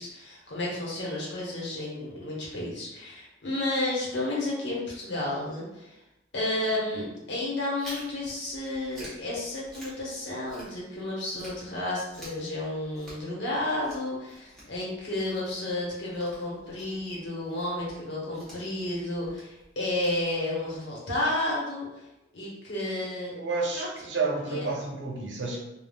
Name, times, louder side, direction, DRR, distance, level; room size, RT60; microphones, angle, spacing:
voice 1, 0.0-6.0 6.3-21.9 22.3-23.3 23.7-23.9 24.5-24.7, left 1 dB, 70° left, -5 dB, 1.0 m, -32 dB
Chewing mastication, 7.8-11.0 11.3-20.8, equal, ahead, 0.9 m, -49 dB
voice 2, 23.3-25.6, right 3 dB, 75° right, -1 dB, 0.6 m, -30 dB
3.4 x 2.3 x 2.3 m, 0.95 s
head